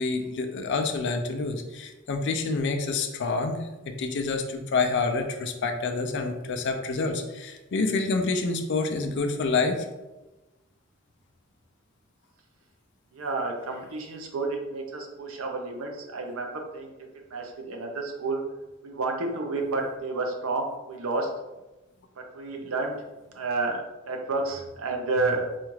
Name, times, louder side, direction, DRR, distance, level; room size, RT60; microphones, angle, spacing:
voice 1, 0.0-9.9, left 3 dB, 60° left, 5 dB, 0.4 m, -28 dB
voice 2, 13.1-16.9 17.3-18.4 18.8-21.3 22.2-22.9 23.3-25.5, right 3 dB, 85° right, 2 dB, 0.6 m, -30 dB
4.2 x 2.3 x 3.1 m, 1.0 s
head